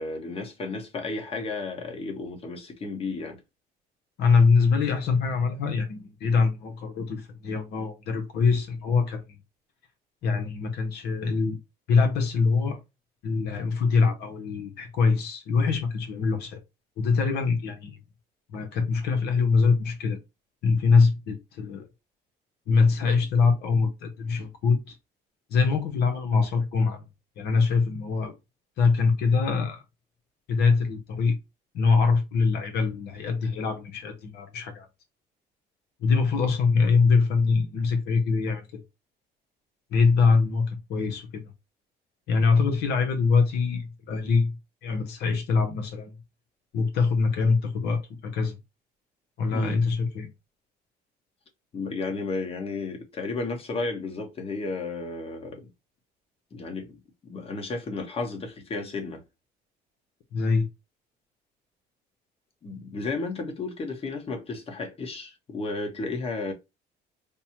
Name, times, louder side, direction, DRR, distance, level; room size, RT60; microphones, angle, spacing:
voice 1, 0.0-3.4 49.5-49.8 51.7-55.7 56.5-59.2 62.6-66.5, left 3 dB, 35° left, 1.1 m, -33 dB
voice 2, 4.2-9.4 10.2-11.6 11.9-12.8 13.2-16.6 17.0-18.0 18.5-20.2 20.6-21.9 22.7-25.0 25.5-27.0 27.4-28.3 28.8-29.8 30.5-31.4 31.7-34.9 36.0-38.8 39.9-41.4 42.3-44.5 44.8-46.2 46.7-48.6 49.4-50.3 60.3-60.7, left 4 dB, 75° left, 0.8 m, -23 dB
5.1 x 2.1 x 2.9 m
cardioid pair, 110°, 17 cm